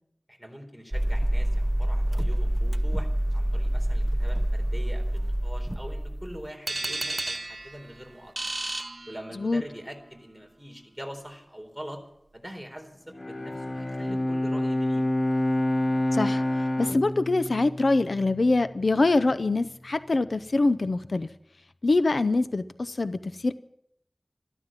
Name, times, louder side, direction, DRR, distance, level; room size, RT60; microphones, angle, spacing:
voice 1, 0.3-3.1 3.3-8.5 9.1-12.0 12.3-15.1, equal, ahead, 3 dB, 4.0 m, -43 dB
sound 1, 0.9-6.5, right 1 dB, 15° right, 0.6 m, -26 dB
sound 2, 6.7-9.7, right 2 dB, 55° right, 0.7 m, -33 dB
Bowed string instrument, 13.1-18.6, left 1 dB, 40° left, 0.7 m, -28 dB
voice 2, 16.1-16.4 16.8-21.3 21.8-23.5, left 2 dB, 90° left, 12 dB, 0.6 m, -24 dB
13.5 x 13.5 x 7.4 m, 0.75 s
wide cardioid pair, 55°, 0 cm